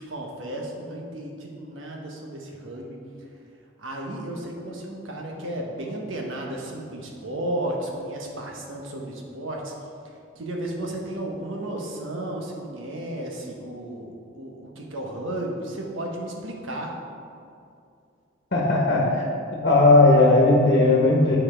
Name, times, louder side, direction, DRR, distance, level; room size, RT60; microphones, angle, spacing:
voice 1, 0.0-3.0 3.8-9.7 10.3-14.1 14.3-16.9, right 1 dB, 90° right, 0 dB, 1.2 m, -33 dB
voice 2, 18.5-19.3 19.6-21.4, left 2 dB, 55° left, -3 dB, 1.2 m, -17 dB
8.9 x 4.6 x 4.4 m, 2.4 s
head